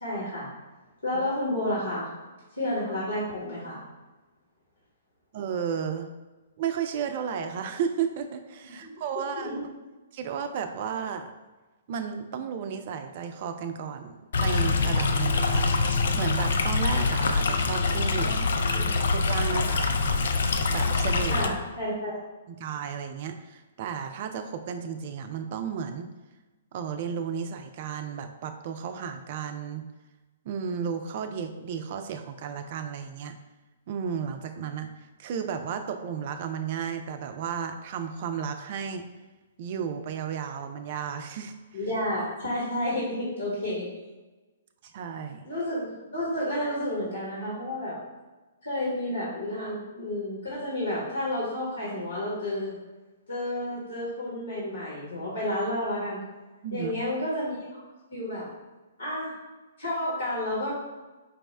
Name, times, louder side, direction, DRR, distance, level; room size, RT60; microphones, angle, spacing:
voice 1, 0.0-0.5 1.0-2.1 2.5-3.9 8.8-8.9 9.4-9.6 18.2-18.9 21.3-22.2 41.7-43.9 45.4-48.0 48.6-52.7 53.3-56.2 56.7-57.5 58.1-58.5 59.0-59.3 59.8-60.7, left 1 dB, 75° left, -6 dB, 1.3 m, -31 dB
voice 2, 5.3-6.1 6.6-9.6 10.1-11.3 11.9-15.7 16.1-18.4 18.7-20.2 20.7-21.5 22.5-26.1 26.7-29.8 30.5-33.4 33.9-34.9 35.2-39.0 39.6-41.8 44.8-45.4 56.6-56.9, right 7 dB, 40° right, 7 dB, 0.3 m, -33 dB
Stream, 14.3-21.5, left 4 dB, 60° left, 0.3 m, -25 dB
4.7 x 2.0 x 3.3 m, 1.2 s
figure-of-eight pair, 120°, 0 cm